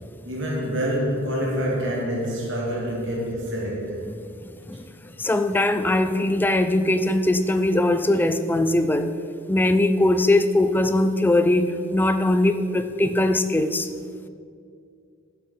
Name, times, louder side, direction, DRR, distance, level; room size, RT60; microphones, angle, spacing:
voice 1, 0.2-4.0, equal, 70° right, -3 dB, 2.0 m, -26 dB
voice 2, 4.4-9.1 9.5-13.9, left 1 dB, 10° left, 9 dB, 0.3 m, -21 dB
7.6 x 7.1 x 4.3 m, 2.3 s
head